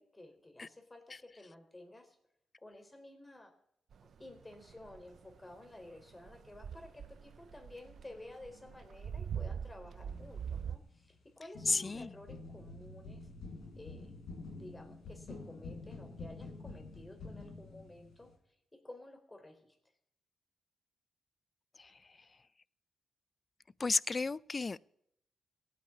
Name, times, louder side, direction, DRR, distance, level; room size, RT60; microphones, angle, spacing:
voice 1, 0.0-2.2 2.6-3.5 4.2-13.3 13.7-14.2 14.5-19.8, left 1 dB, 25° left, 6 dB, 4.1 m, -53 dB
sound 1, 3.9-10.8, right 7 dB, 70° right, 0.7 m, -43 dB
sound 2, 10.1-11.2 11.5-18.3, left 3 dB, 80° left, 4.3 m, -48 dB
voice 2, 11.7-12.1 21.8-22.4 23.8-24.8, left 4 dB, 40° left, 22 dB, 0.5 m, -34 dB
16.5 x 9.4 x 8.5 m, 0.75 s
supercardioid pair, 45°, 0 cm